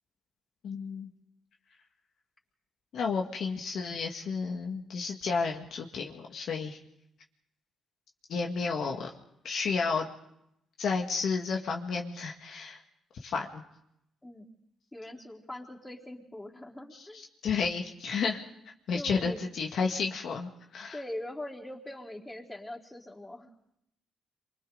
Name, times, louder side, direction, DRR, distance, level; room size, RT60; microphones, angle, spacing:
voice 1, 0.6-1.1 2.9-6.8 8.3-9.1 9.4-10.0 10.8-12.8 13.2-13.6 16.9-17.1 17.4-18.4 18.9-21.0, left 5 dB, 70° left, 1 dB, 2.0 m, -31 dB
voice 2, 14.9-17.2 18.9-19.4 20.9-23.5, left 1 dB, 10° left, -3 dB, 3.9 m, -42 dB
28.5 x 24.5 x 4.0 m, 0.79 s
cardioid pair, 90°, 0 cm